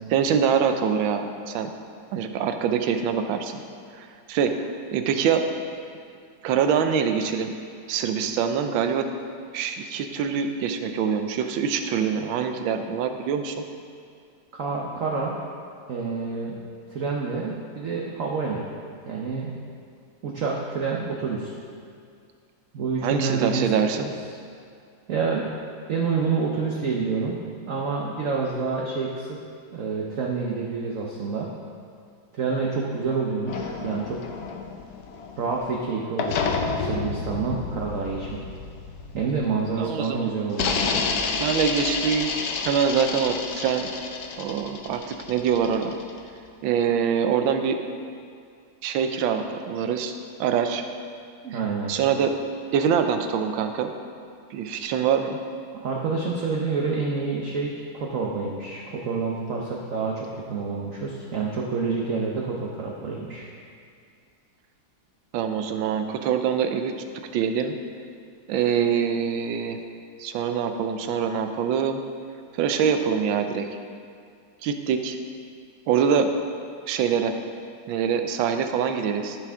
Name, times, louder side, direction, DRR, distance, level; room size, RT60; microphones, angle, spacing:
voice 1, 0.1-1.7 2.1-3.6 3.9-4.5 4.9-5.4 6.4-7.5 7.9-9.1 9.5-13.6 23.0-24.1 39.8-40.3 41.4-42.3 42.6-43.9 44.4-46.0 46.6-47.8 48.8-50.1 50.4-50.8 51.5-51.6 51.9-52.3 52.7-53.9 54.5-55.4 65.3-66.9 67.3-67.8 68.5-69.8 70.2-72.0 72.5-73.7 74.6-75.2 75.9-76.3 76.9-77.3 77.9-79.4, right 7 dB, 80° right, 7 dB, 1.4 m, -24 dB
voice 2, 14.6-15.4 15.9-16.6 16.9-18.7 19.1-19.6 20.2-21.5 22.7-24.1 25.1-25.5 25.9-27.4 27.7-29.4 29.7-31.5 32.3-34.2 35.4-38.4 39.1-41.0 51.4-51.9 55.7-63.5, right 4 dB, 55° right, -2 dB, 0.9 m, -28 dB
sound 1, 33.5-35.8 36.2-39.8 40.5-46.3, left 5 dB, 65° left, 1.1 m, -30 dB
14.0 x 5.9 x 3.6 m, 2.3 s
omnidirectional pair, 2.1 m